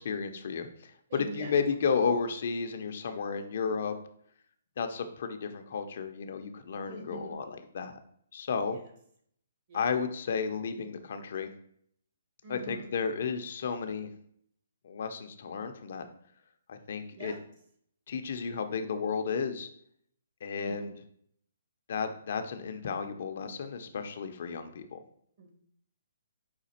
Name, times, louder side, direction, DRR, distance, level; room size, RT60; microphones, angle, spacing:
voice 1, 0.0-3.9 4.8-8.0 8.3-8.8 9.7-11.5 12.5-14.1 14.8-16.1 16.7-17.3 18.1-19.7 20.4-20.9 21.9-25.0, left 5 dB, 55° left, 7 dB, 0.5 m, -33 dB
voice 2, 1.1-1.5 6.9-7.4 8.7-8.8 9.7-9.9 12.4-12.9 17.1-17.4 20.6-20.9 25.4-25.5, right 2 dB, 50° right, 0 dB, 1.6 m, -42 dB
5.0 x 2.4 x 4.2 m, 0.66 s
hypercardioid pair, 150°, 0 cm